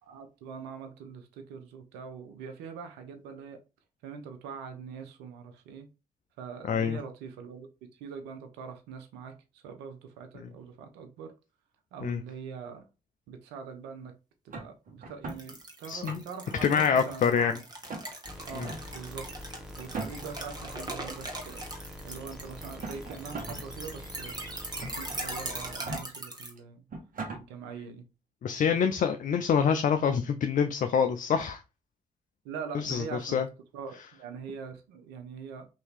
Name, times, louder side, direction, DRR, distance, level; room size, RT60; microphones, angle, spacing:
voice 1, 0.1-3.6 4.0-5.9 6.4-11.3 11.9-12.9 13.3-14.1 14.4-17.6 18.5-19.3 19.8-21.7 22.0-24.4 24.9-26.8 27.3-28.1 28.6-28.8 32.4-33.4 33.7-35.7, right 6 dB, 85° right, 0.5 m, -43 dB
voice 2, 6.7-7.0 12.0-12.2 15.9-16.2 16.6-17.6 18.6-18.7 28.4-31.6 32.7-33.5, left 7 dB, 50° left, 0.4 m, -26 dB
sound 1, 14.5-15.4 15.9-16.5 16.9-17.5 17.9-18.1 18.6-18.8 19.8-20.4 21.5-21.6 22.6-23.6 24.0-24.1 24.8-25.2 25.7-26.0 26.6-26.7 26.9-27.4, right 3 dB, 55° right, 1.1 m, -38 dB
sound 2, 15.3-26.5, right 2 dB, 25° right, 1.2 m, -41 dB
sound 3, 18.3-25.8, left 1 dB, 5° right, 0.9 m, -45 dB
2.9 x 2.7 x 3.3 m
hypercardioid pair, 40°, 17 cm